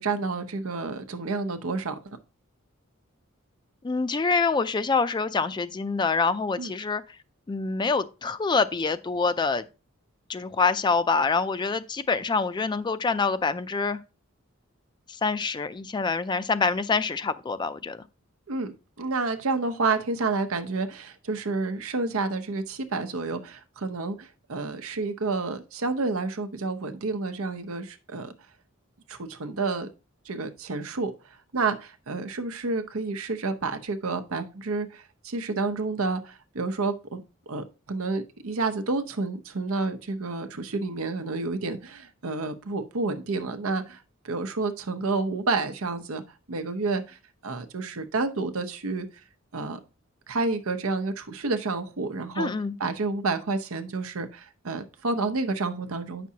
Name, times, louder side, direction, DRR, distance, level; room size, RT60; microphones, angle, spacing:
voice 1, 0.0-2.2 6.6-6.7 18.5-28.3 29.1-29.9 30.3-31.1 31.5-44.0 44.2-46.2 46.5-47.2 47.4-49.1 49.5-49.8 50.3-52.5 52.8-56.3, right 3 dB, 90° right, 0.8 m, -29 dB
voice 2, 3.8-7.0 7.5-9.6 10.3-14.0 15.1-18.0 52.4-52.7, left 4 dB, 20° left, 0.3 m, -26 dB
8.3 x 5.9 x 2.8 m
head